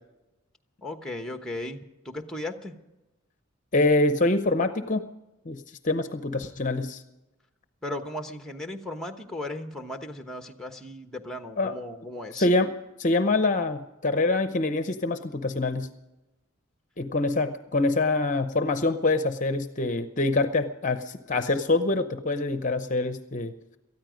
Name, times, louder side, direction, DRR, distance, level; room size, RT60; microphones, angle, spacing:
voice 1, 0.8-2.7 7.8-12.5, left 1 dB, 5° left, 5 dB, 1.1 m, -36 dB
voice 2, 3.7-5.1 5.5-7.0 11.6-11.7 12.3-12.7 13.0-15.9 17.0-23.5, left 2 dB, 35° left, 9 dB, 0.7 m, -25 dB
18.5 x 13.5 x 5.1 m, 0.99 s
head